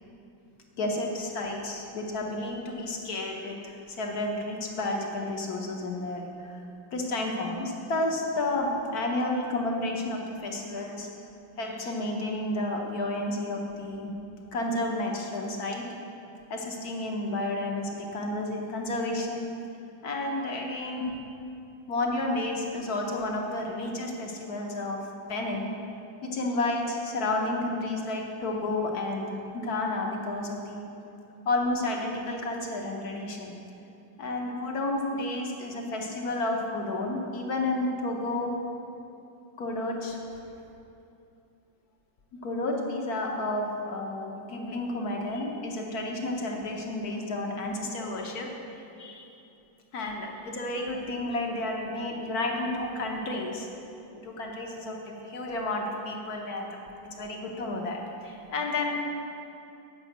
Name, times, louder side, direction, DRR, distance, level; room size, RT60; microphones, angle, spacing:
voice 1, 0.8-6.6 6.9-11.1 11.6-14.1 14.5-15.9 16.5-19.5 20.0-21.1 21.9-25.7 26.2-30.8 31.4-33.5 34.2-38.5 39.6-40.2 42.3-49.3 49.9-53.7 54.2-56.8 57.1-58.9, left 2 dB, 55° left, 1 dB, 1.3 m, -31 dB
8.9 x 5.5 x 8.0 m, 2.7 s
omnidirectional pair, 2.2 m